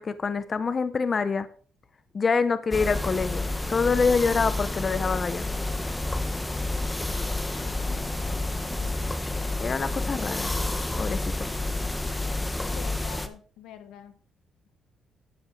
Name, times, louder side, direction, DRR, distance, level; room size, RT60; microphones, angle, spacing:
voice 1, 0.0-1.5 2.1-5.5 9.6-10.5 11.0-11.5, left 5 dB, 40° left, 13 dB, 0.9 m, -26 dB
sound 1, 2.7-13.3, left 2 dB, 15° left, 1.3 m, -29 dB
voice 2, 7.5-9.5 12.7-14.2, left 10 dB, 90° left, 10 dB, 1.4 m, -47 dB
12.0 x 8.0 x 4.7 m, 0.43 s
cardioid pair, 90°, 0 cm